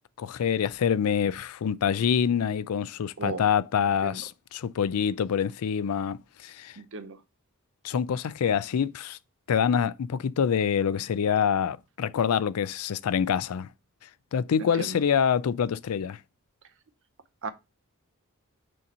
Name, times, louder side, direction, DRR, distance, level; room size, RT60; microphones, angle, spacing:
voice 1, 0.2-6.8 7.8-9.2 9.5-13.7 14.3-16.2, left 7 dB, 75° left, 0.4 m, -26 dB
voice 2, 6.8-7.2 14.8-15.0 17.4-17.5, right 4 dB, 60° right, 0.7 m, -35 dB
6.3 x 2.9 x 5.3 m
head